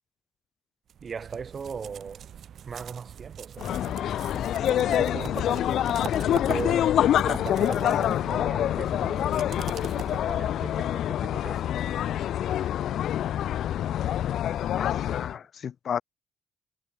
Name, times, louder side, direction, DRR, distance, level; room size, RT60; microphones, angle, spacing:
sound 1, 0.9-10.6, right 9 dB, 60° right, 7.6 m, -42 dB
voice 1, 1.0-2.3 2.7-3.9 4.7-7.0 7.3-9.4 10.1-12.0, right 6 dB, 45° right, 7.0 m, -39 dB
sound 2, 3.6-15.4, left 11 dB, 75° left, 0.5 m, -26 dB
voice 2, 14.7-16.0, left 8 dB, 55° left, 1.2 m, -33 dB
cardioid pair, 90°, 0 cm